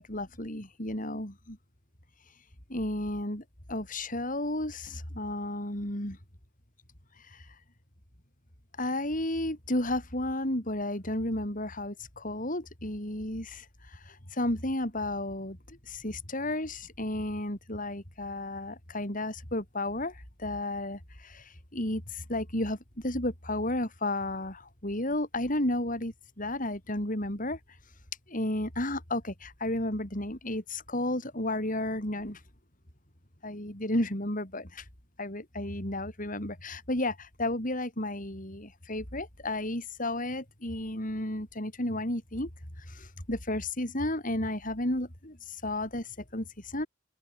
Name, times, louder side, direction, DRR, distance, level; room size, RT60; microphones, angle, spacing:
voice 1, 0.0-1.6 2.7-6.2 7.3-7.4 8.8-13.7 13.9-22.8 23.0-27.6 28.3-32.4 33.4-34.8 35.2-42.5 42.9-46.9, left 1 dB, 45° left, 7.5 m, -33 dB
head